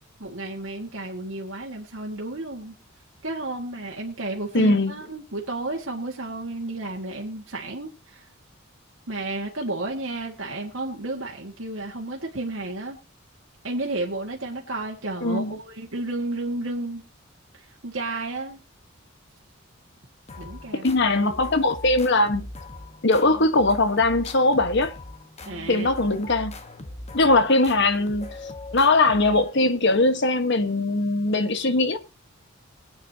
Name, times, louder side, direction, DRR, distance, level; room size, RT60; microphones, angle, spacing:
voice 1, 0.2-2.8 3.2-8.3 9.1-13.0 13.6-17.0 17.5-18.6 20.4-20.9 25.5-25.9, right 2 dB, 65° right, 1.9 m, -32 dB
voice 2, 4.5-4.9 15.2-15.6 20.8-22.4 23.0-24.9 25.7-26.6 27.1-28.4 28.7-32.0, left 2 dB, 60° left, 1.4 m, -20 dB
sound 1, 20.3-29.8, left 2 dB, 30° left, 1.3 m, -40 dB
22.0 x 9.2 x 2.8 m
head